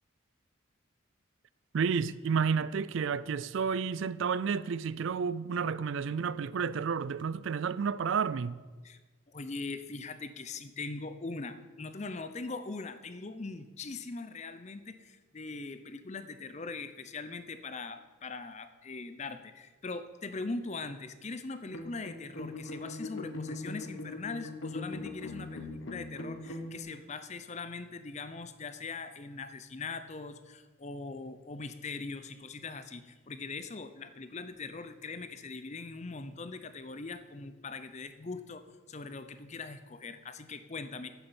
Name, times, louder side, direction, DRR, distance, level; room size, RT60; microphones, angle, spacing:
voice 1, 1.7-8.6, right 6 dB, 65° right, 0.4 m, -31 dB
voice 2, 9.3-41.1, left 3 dB, 35° left, 0.6 m, -41 dB
sound 1, 21.7-26.8, left 2 dB, 70° left, 1.3 m, -41 dB
9.5 x 7.1 x 7.0 m
head